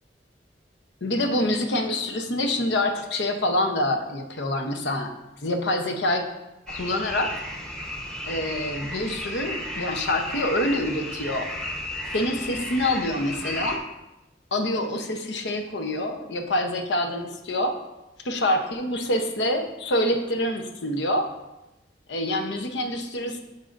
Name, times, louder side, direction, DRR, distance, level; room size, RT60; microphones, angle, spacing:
voice 1, 1.0-5.1 5.4-6.3 6.7-7.3 8.2-11.5 12.1-13.8 14.5-17.8 18.2-21.3 22.1-23.4, left 1 dB, 85° left, 5 dB, 0.8 m, -26 dB
sound 1, 6.7-13.8, left 1 dB, 5° left, 0.9 m, -34 dB
8.9 x 5.6 x 2.5 m, 0.97 s
head